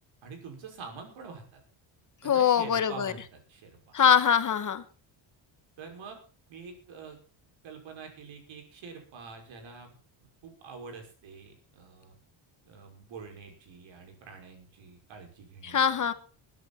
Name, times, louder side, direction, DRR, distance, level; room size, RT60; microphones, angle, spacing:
voice 1, 0.2-1.6 2.2-4.0 5.8-6.2 6.5-7.2 7.6-12.2 12.6-16.1, right 5 dB, 70° right, 6.0 m, -46 dB
voice 2, 2.2-3.1 3.9-4.8 15.6-16.1, left 8 dB, 40° left, 1.3 m, -23 dB
21.0 x 10.5 x 4.4 m
cardioid pair, 135°, 47 cm